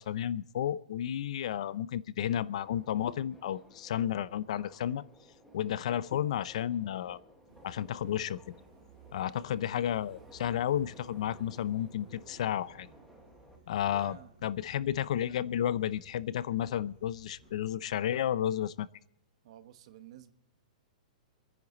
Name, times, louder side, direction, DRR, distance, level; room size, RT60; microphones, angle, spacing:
voice 1, 0.0-5.0 5.5-7.2 7.6-8.4 9.1-12.9 13.7-14.2 14.4-18.9, left 10 dB, 55° left, 0.6 m, -32 dB
Subway metro underground, 2.2-13.6, equal, ahead, 1.5 m, -58 dB
sound 1, 7.5-17.5, right 4 dB, 20° right, 6.4 m, -57 dB
voice 2, 13.8-14.3 19.4-20.3, right 10 dB, 45° right, 1.2 m, -50 dB
26.5 x 10.0 x 4.0 m
hypercardioid pair, 170°, 4 cm